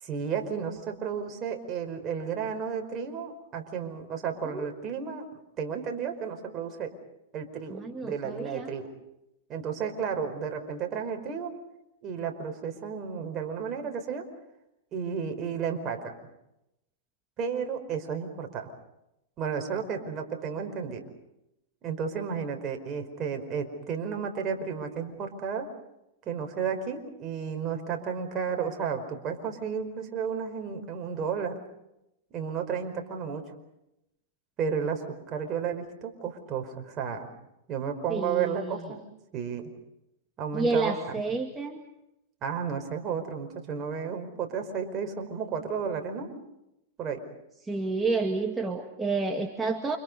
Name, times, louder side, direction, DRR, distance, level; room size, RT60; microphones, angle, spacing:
voice 1, 0.0-5.3 5.6-6.9 7.3-8.9 9.5-11.5 12.0-14.2 14.9-16.1 17.4-18.7 19.4-21.0 21.8-25.7 26.2-31.6 32.3-33.4 34.6-37.3 37.7-39.0 39.3-39.7 40.4-40.9 42.4-46.4 47.0-47.2, right 6 dB, 35° right, 4 dB, 5.0 m, -32 dB
voice 2, 7.7-8.7 38.1-39.0 40.5-41.8 47.6-50.0, right 3 dB, 10° right, 3 dB, 2.1 m, -30 dB
29.5 x 27.0 x 5.4 m, 0.86 s
hypercardioid pair, 125°, 0 cm